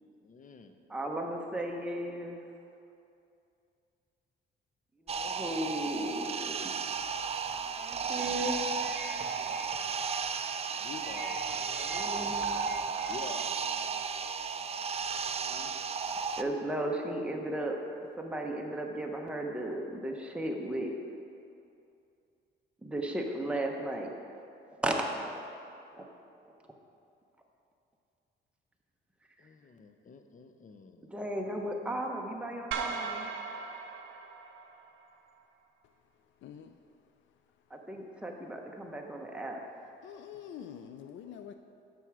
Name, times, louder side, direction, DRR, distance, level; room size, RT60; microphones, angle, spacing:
voice 1, 0.2-0.8 10.8-11.4 13.1-13.4 29.4-31.1, left 5 dB, 40° left, 7 dB, 0.7 m, -47 dB
voice 2, 0.9-2.4 5.1-6.6 7.7-8.6 11.7-12.5 15.4-15.7 16.4-17.8 18.2-21.0 22.8-24.1 24.8-25.0 25.4-25.5 25.9-26.0 31.1-33.3 37.7-39.6, right 1 dB, 5° right, 1 dB, 0.9 m, -35 dB
sound 1, 5.1-16.4, right 5 dB, 30° right, 0.4 m, -34 dB
sound 2, 8.4-13.5, right 4 dB, 55° right, 0.9 m, -48 dB
sound 3, 32.7-35.1, right 5 dB, 80° right, 0.7 m, -38 dB
voice 3, 36.4-36.8 40.0-41.5, left 9 dB, 70° left, 7 dB, 0.4 m, -45 dB
9.0 x 6.2 x 4.8 m, 2.6 s
cardioid pair, 90°, 20 cm